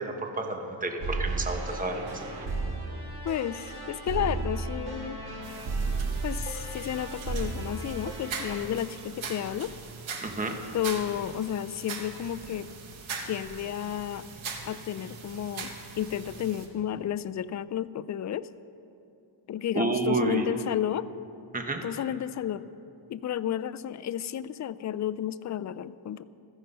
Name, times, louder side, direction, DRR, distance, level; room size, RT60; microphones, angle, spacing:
voice 1, 0.0-2.5 10.2-10.6 19.7-20.5 21.5-21.8, right 3 dB, 15° right, 4 dB, 1.2 m, -30 dB
sound 1, 1.0-8.6, right 3 dB, 50° right, 2.6 m, -34 dB
voice 2, 3.2-5.2 6.2-9.7 10.7-12.7 13.2-14.3 14.6-18.5 19.5-21.1 21.8-22.7 23.1-26.2, left 10 dB, 40° left, 14 dB, 0.4 m, -32 dB
sound 2, 5.4-16.7, right 5 dB, 70° right, 1.9 m, -41 dB
15.5 x 13.5 x 5.5 m, 2.6 s
cardioid pair, 135°, 49 cm